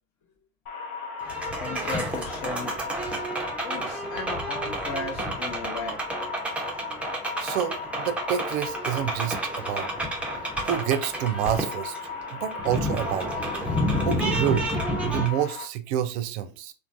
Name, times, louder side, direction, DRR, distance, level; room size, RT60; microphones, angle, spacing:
sound 1, 0.7-15.7, left 5 dB, 85° left, 0.7 m, -37 dB
sound 2, 1.2-15.3, equal, 5° right, 0.5 m, -30 dB
voice 1, 1.6-2.7 3.6-6.0, left 3 dB, 45° left, 0.9 m, -35 dB
voice 2, 7.4-9.9 10.4-12.0 12.3-13.3 14.0-14.7 15.0-16.7, right 10 dB, 50° right, 0.5 m, -28 dB
3.1 x 2.2 x 2.6 m
hypercardioid pair, 90°, 42 cm